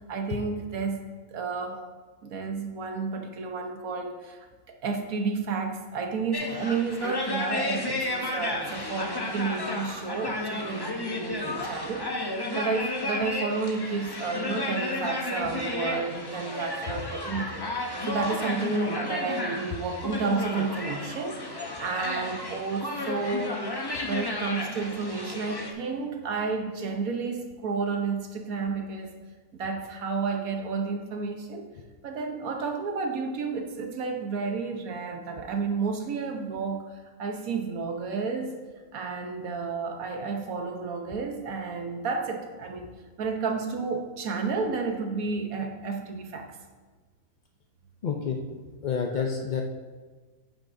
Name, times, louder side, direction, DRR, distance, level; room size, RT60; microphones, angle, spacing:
voice 1, 0.1-1.0 1.3-1.8 2.2-23.6 24.0-29.2 29.5-31.7 32.0-38.6 38.9-42.9 43.2-46.6 48.3-48.4 49.1-49.5, right 4 dB, 75° right, 4 dB, 1.4 m, -31 dB
sound 1, 6.3-25.7, left 2 dB, 20° left, 0.7 m, -33 dB
voice 2, 48.0-48.4 48.8-49.6, left 6 dB, 65° left, 2 dB, 0.4 m, -28 dB
10.0 x 9.1 x 2.6 m, 1.4 s
omnidirectional pair, 1.5 m